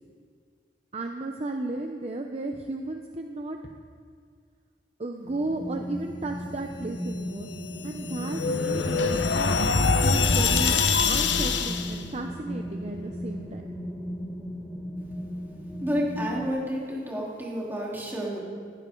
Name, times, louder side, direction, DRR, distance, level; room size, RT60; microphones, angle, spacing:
voice 1, 0.9-3.7 5.0-7.5 7.8-9.6 10.0-10.8 11.1-13.7, right 2 dB, 35° right, 3 dB, 0.8 m, -34 dB
sound 1, 5.2-16.5, equal, 15° left, 2.1 m, -37 dB
sound 2, 7.5-12.0, left 4 dB, 90° left, 1.0 m, -24 dB
voice 2, 15.8-18.4, equal, 10° right, -5 dB, 3.6 m, -30 dB
19.5 x 15.5 x 3.9 m, 2.1 s
head